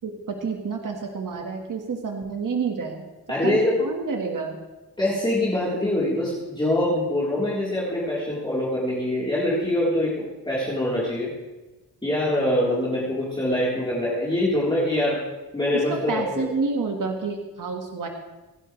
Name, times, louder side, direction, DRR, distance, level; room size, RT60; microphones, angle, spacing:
voice 1, 0.0-3.1 3.4-4.6 15.9-18.1, right 4 dB, 55° right, 2 dB, 1.7 m, -29 dB
voice 2, 3.3-3.8 5.0-10.1 10.5-11.3 12.0-15.2 15.5-16.5, left 1 dB, 15° left, -8 dB, 3.6 m, -24 dB
25.5 x 11.0 x 3.3 m, 1.1 s
wide cardioid pair, 125°, 38 cm